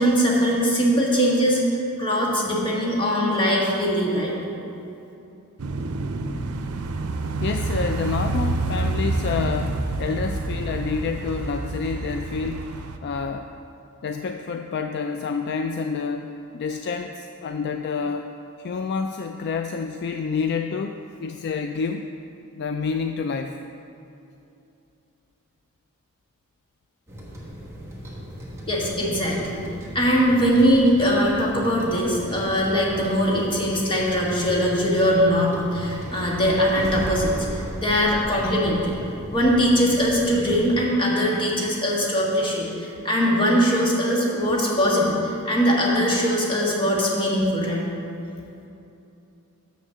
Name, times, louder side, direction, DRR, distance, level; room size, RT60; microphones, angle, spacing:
voice 1, 0.0-1.6 2.0-4.3 28.7-29.6 29.9-38.9 39.3-47.9, equal, 25° left, -3 dB, 1.6 m, -21 dB
sound 1, 5.6-13.0, right 2 dB, 90° right, 0.6 m, -28 dB
voice 2, 7.4-12.7 13.0-13.5 14.0-18.3 18.6-22.0 22.6-23.5, left 5 dB, 50° left, 6 dB, 0.3 m, -28 dB
sound 2, 27.1-40.8, equal, 15° right, 1.3 m, -36 dB
6.7 x 6.3 x 6.7 m, 2.8 s
head